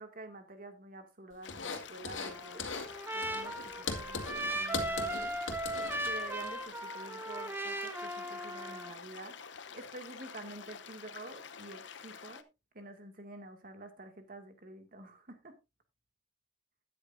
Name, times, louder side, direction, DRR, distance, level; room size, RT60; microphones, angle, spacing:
voice 1, 0.0-2.7 3.1-5.4 6.0-9.4 9.7-12.4 12.7-15.5, right 2 dB, 50° right, 2.2 m, -48 dB
sound 1, 1.4-12.4, left 6 dB, 65° left, 0.8 m, -48 dB
sound 2, 1.5-2.3 2.6-2.9 3.2-6.5, left 4 dB, 85° left, 2.2 m, -39 dB
Trumpet, 2.2-9.0, right 1 dB, 10° right, 1.1 m, -38 dB
13.0 x 9.7 x 2.6 m
head